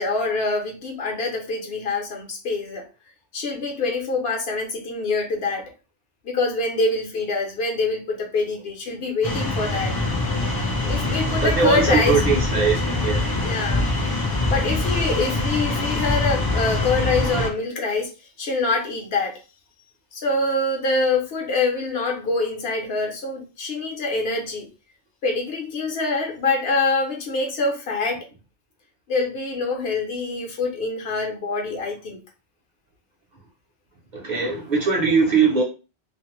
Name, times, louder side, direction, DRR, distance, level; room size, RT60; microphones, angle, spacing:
voice 1, 0.0-2.9 3.3-5.7 6.2-10.0 10.8-12.2 12.6-12.7 13.4-13.9 14.5-18.1 18.4-19.4 20.1-24.7 25.2-28.3 29.1-32.2, left 3 dB, 65° left, 0.8 m, -25 dB
sound 1, 9.2-17.5, left 2 dB, 30° left, 0.4 m, -24 dB
voice 2, 11.4-13.3 34.1-35.6, right 5 dB, 50° right, 0.7 m, -21 dB
2.4 x 2.1 x 3.0 m
omnidirectional pair, 1.1 m